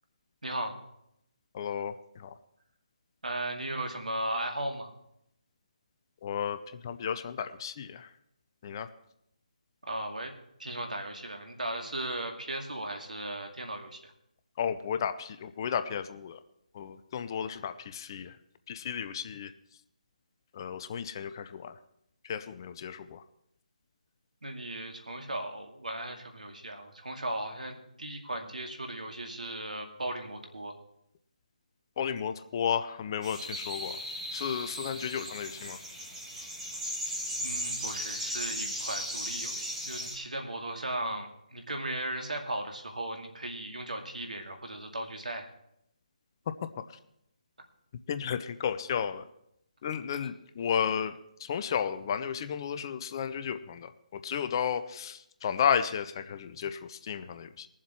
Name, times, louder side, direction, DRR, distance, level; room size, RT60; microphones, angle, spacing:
voice 1, 0.4-0.8 3.2-4.9 9.8-10.3 10.6-14.1 24.4-30.7 37.4-45.5, right 1 dB, 75° right, 3 dB, 2.3 m, -36 dB
voice 2, 1.5-2.3 6.2-8.1 8.6-8.9 14.6-16.4 16.7-18.3 18.7-19.5 20.5-21.7 22.3-23.2 32.0-34.0 34.3-35.8 46.5-46.7 48.1-49.2 49.8-57.7, left 8 dB, 30° left, 11 dB, 0.6 m, -33 dB
sound 1, 33.2-40.1, equal, 10° right, 2.6 m, -36 dB
20.5 x 7.4 x 4.5 m, 0.77 s
figure-of-eight pair, 150°, 4 cm